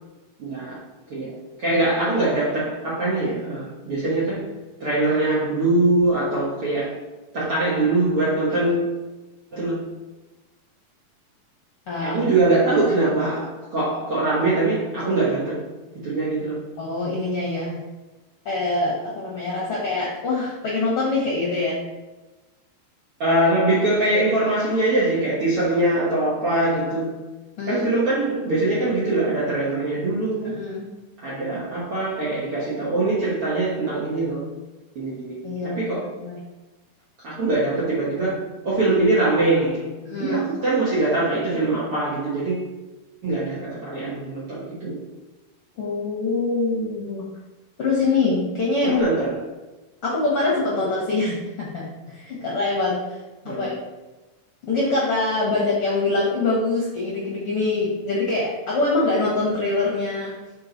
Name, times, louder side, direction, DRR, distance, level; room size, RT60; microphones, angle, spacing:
voice 1, 0.4-0.8 1.1-1.3 1.6-4.5 4.8-7.0 7.3-8.9 9.5-9.8 12.0-15.6 16.0-16.6 23.2-27.1 27.6-30.5 31.2-34.4 34.9-36.1 37.2-39.9 40.2-42.7 43.2-45.0 48.8-49.4 53.4-53.8, right 2 dB, 60° right, -8 dB, 1.6 m, -22 dB
voice 2, 11.9-12.3 16.8-17.8 18.4-21.8 27.6-27.9 30.4-30.9 35.4-36.4 40.0-40.4 45.8-47.2 47.8-49.0 50.0-53.2 53.4-53.7 54.6-60.3, left 3 dB, 60° left, -5 dB, 1.5 m, -24 dB
6.7 x 5.0 x 4.0 m, 1.1 s
omnidirectional pair, 4.5 m